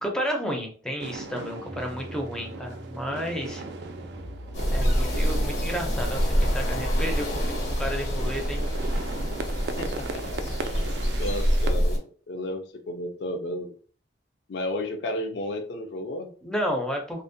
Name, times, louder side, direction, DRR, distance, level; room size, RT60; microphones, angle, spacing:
voice 1, 0.0-3.6 4.7-8.6 16.4-17.2, equal, 5° left, 2 dB, 0.5 m, -32 dB
sound 1, 1.0-11.7, right 3 dB, 65° right, 0.3 m, -38 dB
sound 2, 1.6-7.0, equal, 30° right, 0.7 m, -44 dB
sound 3, 4.5-12.0, equal, 85° left, 1.2 m, -26 dB
voice 2, 9.8-10.4 11.2-12.0 12.3-13.7 14.5-16.3, left 1 dB, 65° left, 6 dB, 0.4 m, -32 dB
2.5 x 2.1 x 2.5 m, 0.41 s
head